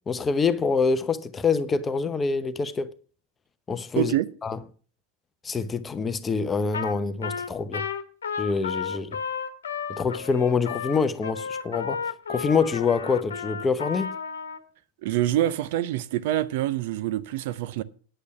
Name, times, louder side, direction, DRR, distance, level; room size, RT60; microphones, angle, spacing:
voice 1, 0.1-2.9 3.7-4.1 4.4-4.6 5.4-7.8 8.4-9.2 10.0-12.0 12.3-14.2, left 5 dB, 15° left, 0.8 m, -25 dB
voice 2, 4.0-4.3 15.0-17.8, right 13 dB, 50° right, 0.6 m, -26 dB
Trumpet, 6.7-7.0 7.2-14.6, left 6 dB, 65° left, 1.2 m, -33 dB
10.0 x 8.3 x 5.7 m
figure-of-eight pair, 90°, 0 cm